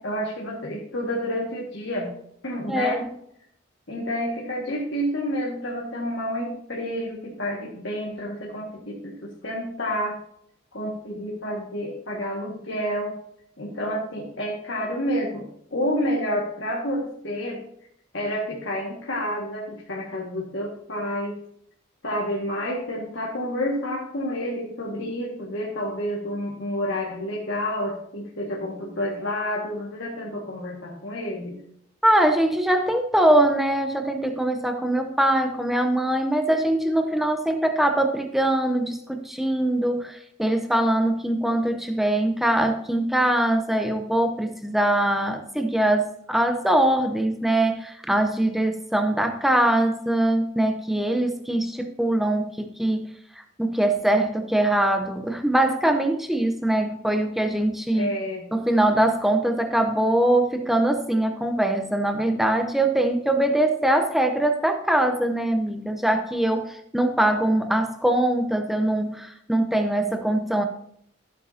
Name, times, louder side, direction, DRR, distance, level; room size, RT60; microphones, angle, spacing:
voice 1, 0.0-2.1 2.4-3.0 3.9-10.2 10.7-13.1 13.6-15.5 15.7-17.6 18.1-21.4 22.0-31.6 57.9-58.5, equal, 75° left, -4 dB, 1.9 m, -29 dB
voice 2, 2.7-3.0 32.0-53.1 53.6-58.1 58.5-70.6, right 1 dB, ahead, 5 dB, 0.8 m, -22 dB
14.0 x 8.4 x 2.8 m, 0.70 s
head